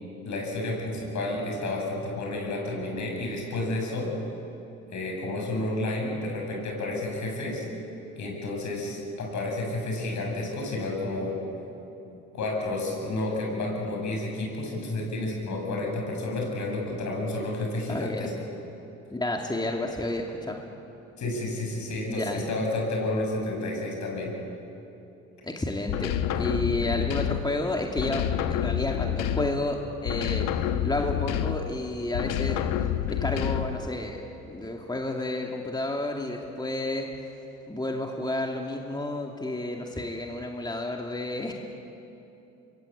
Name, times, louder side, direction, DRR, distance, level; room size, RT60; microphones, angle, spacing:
voice 1, 0.2-4.1 4.9-7.7 8.1-11.4 12.1-18.3 21.2-24.3, left 2 dB, 60° left, 0 dB, 7.9 m, -31 dB
voice 2, 17.9-18.3 19.1-20.6 22.1-22.5 25.4-30.5 30.8-32.6 33.1-37.1 37.7-41.5, left 1 dB, 15° left, 1 dB, 2.6 m, -31 dB
sound 1, 25.9-27.6 28.0-29.7 30.0-31.8 32.1-33.9, left 10 dB, 80° left, 1.2 m, -28 dB
25.0 x 22.5 x 8.7 m, 2.9 s
supercardioid pair, 70°, 32 cm